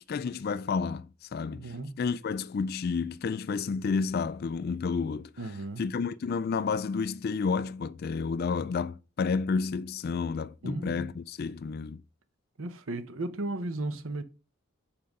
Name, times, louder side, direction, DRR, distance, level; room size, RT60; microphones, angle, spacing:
voice 1, 0.1-12.0, left 5 dB, 45° left, 0.3 m, -31 dB
voice 2, 1.5-2.0 5.4-5.8 10.6-11.1 12.6-14.2, right 2 dB, 65° right, 0.8 m, -35 dB
5.7 x 5.2 x 6.5 m
head